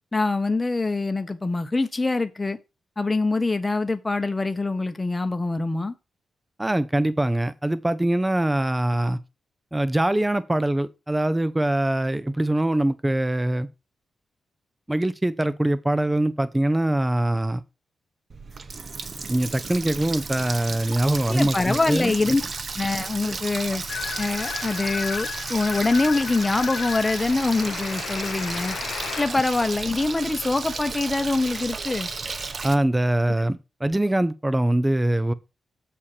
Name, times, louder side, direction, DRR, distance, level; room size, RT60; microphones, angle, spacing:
voice 1, 0.1-2.6 3.0-5.9 21.3-22.4 22.7-23.8 24.2-28.8 29.2-32.1, left 3 dB, 15° left, 0.9 m, -24 dB
voice 2, 6.6-9.2 9.7-13.7 14.9-17.6 19.3-22.2 29.3-29.4 32.6-35.3, right 1 dB, 10° right, 0.5 m, -23 dB
Water tap faucet, 18.3-32.7, right 4 dB, 40° right, 0.9 m, -33 dB
sound 1, 23.9-29.3, left 8 dB, 85° left, 0.4 m, -34 dB
7.3 x 4.3 x 6.5 m
wide cardioid pair, 145°, 0 cm